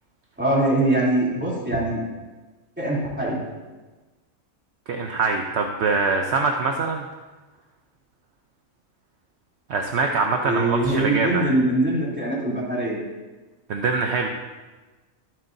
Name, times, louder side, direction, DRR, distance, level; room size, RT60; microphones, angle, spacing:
voice 1, 0.4-2.0 2.8-3.4 10.4-13.0, right 1 dB, 10° right, -7 dB, 3.1 m, -22 dB
voice 2, 4.9-7.1 9.7-11.5 13.7-14.3, right 4 dB, 60° right, 3 dB, 0.9 m, -23 dB
22.0 x 7.7 x 2.7 m, 1.2 s
omnidirectional pair, 1.4 m